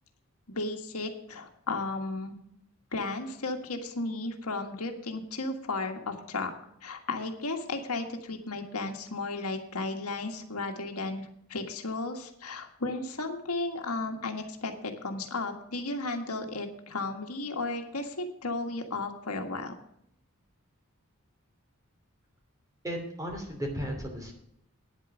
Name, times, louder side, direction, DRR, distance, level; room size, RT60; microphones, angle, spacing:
voice 1, 0.5-2.4 2.9-6.5 6.8-19.7, left 3 dB, 85° left, 4 dB, 1.7 m, -34 dB
voice 2, 22.8-24.3, equal, 15° right, 2 dB, 2.9 m, -35 dB
9.9 x 8.6 x 6.1 m, 0.75 s
head